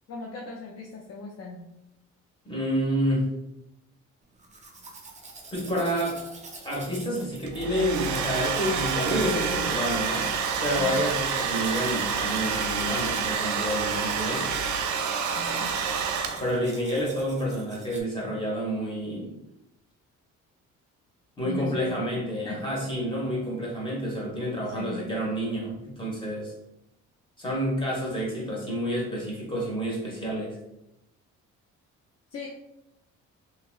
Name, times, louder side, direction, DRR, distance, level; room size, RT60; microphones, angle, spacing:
voice 1, 0.1-1.6 10.7-11.0 15.3-15.7 21.4-22.1 22.4-22.6 24.7-25.1 32.3-32.5, left 3 dB, 55° left, -2 dB, 0.5 m, -38 dB
voice 2, 2.4-3.3 5.5-6.2 6.6-10.3 10.6-14.4 16.4-19.3 21.4-26.5 27.4-30.6, equal, 15° left, -4 dB, 1.3 m, -29 dB
Domestic sounds home sounds, 4.4-18.0, right 3 dB, 25° right, 0.6 m, -43 dB
Domestic sounds home sounds 2, 7.5-16.7, right 6 dB, 75° right, 0.5 m, -28 dB
2.9 x 2.8 x 2.4 m, 0.88 s
cardioid pair, 90°, 30 cm